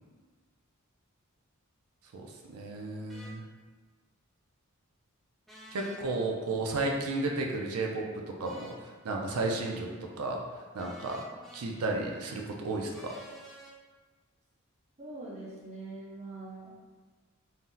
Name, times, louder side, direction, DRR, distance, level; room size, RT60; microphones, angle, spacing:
voice 1, 2.1-3.4 5.7-10.4 10.7-11.2 11.5-13.1, right 2 dB, 80° right, 0 dB, 0.4 m, -33 dB
sound 1, 3.1-3.3 5.5-6.0 8.4-8.8 10.8-11.6 12.9-13.7, equal, ahead, 0.3 m, -50 dB
voice 2, 15.0-16.8, right 2 dB, 30° right, -6 dB, 0.8 m, -43 dB
2.7 x 2.0 x 3.7 m, 1.4 s
head